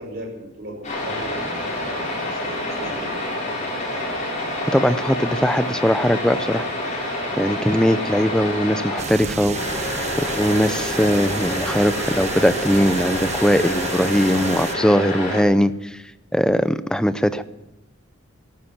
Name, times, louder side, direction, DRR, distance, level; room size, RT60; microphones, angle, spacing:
voice 1, 0.0-3.5, right 1 dB, 55° right, 1 dB, 5.6 m, -38 dB
sound 1, 0.8-9.0 9.5-15.4, left 1 dB, 35° left, 6.9 m, -27 dB
voice 2, 4.7-6.7 7.4-9.9 10.2-16.0 16.3-17.4, equal, 5° left, 13 dB, 0.6 m, -20 dB
sound 2, 9.0-14.8, right 4 dB, 35° right, 1.1 m, -31 dB
14.5 x 13.0 x 7.3 m, 0.95 s
head